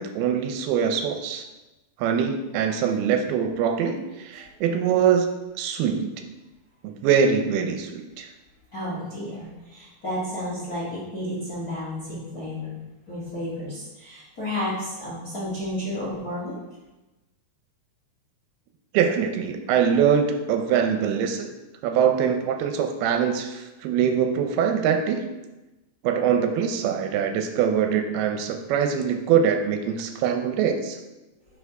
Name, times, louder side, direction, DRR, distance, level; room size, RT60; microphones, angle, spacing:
voice 1, 0.0-1.5 2.0-6.1 6.8-8.3 18.9-21.5 21.8-25.3 26.0-31.0, right 7 dB, 85° right, 6 dB, 2.6 m, -23 dB
voice 2, 8.7-12.8 13.1-16.6, left 1 dB, 40° left, -8 dB, 1.4 m, -32 dB
5.9 x 5.8 x 4.6 m, 1.1 s
omnidirectional pair, 4.5 m